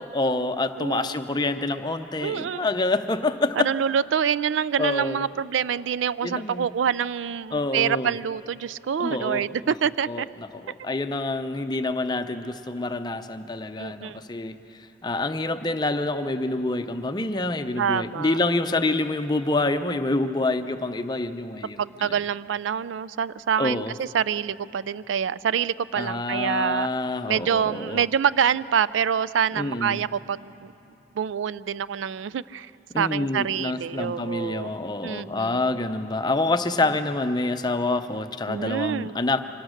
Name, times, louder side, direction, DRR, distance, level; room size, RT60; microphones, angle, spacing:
voice 1, 0.0-3.7 4.8-5.2 6.2-6.7 7.5-8.1 9.0-9.7 10.1-14.6 15.0-22.1 23.6-23.9 26.0-28.0 29.6-30.0 32.9-39.4, left 2 dB, 20° left, 9 dB, 0.6 m, -27 dB
voice 2, 0.8-1.1 2.2-2.7 3.6-10.3 13.8-14.2 17.8-18.4 21.8-26.9 27.3-30.7 31.2-32.7 33.0-34.7 35.0-35.8 38.5-39.2, right 8 dB, 90° right, 19 dB, 0.4 m, -26 dB
24.5 x 18.0 x 6.5 m, 2.9 s
head